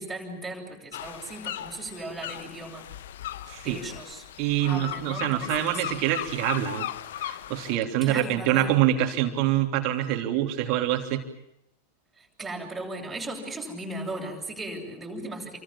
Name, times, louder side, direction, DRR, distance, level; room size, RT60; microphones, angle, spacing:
voice 1, 0.0-2.9 3.6-4.2 4.6-5.9 8.0-8.7 12.2-15.6, right 2 dB, 10° right, -2 dB, 7.8 m, -37 dB
sound 1, 0.9-7.8, left 12 dB, 55° left, 1.2 m, -37 dB
voice 2, 3.5-3.8 4.4-6.9 7.2-11.2, right 12 dB, 40° right, 5 dB, 3.3 m, -25 dB
29.0 x 25.0 x 7.3 m, 0.80 s
figure-of-eight pair, 90°, 0 cm